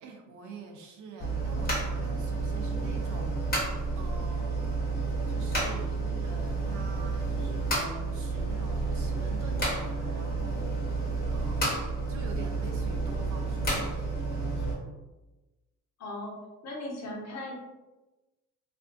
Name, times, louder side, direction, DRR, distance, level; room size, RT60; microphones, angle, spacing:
voice 1, 0.0-4.7 5.3-14.8, right 4 dB, 75° right, 2 dB, 0.6 m, -45 dB
sound 1, 1.2-14.7, right 3 dB, 30° left, 1.1 m, -30 dB
voice 2, 16.0-16.4 16.6-17.5, left 1 dB, 60° left, -2 dB, 0.9 m, -37 dB
2.5 x 2.2 x 2.5 m, 1.1 s
cardioid pair, 90°, 30 cm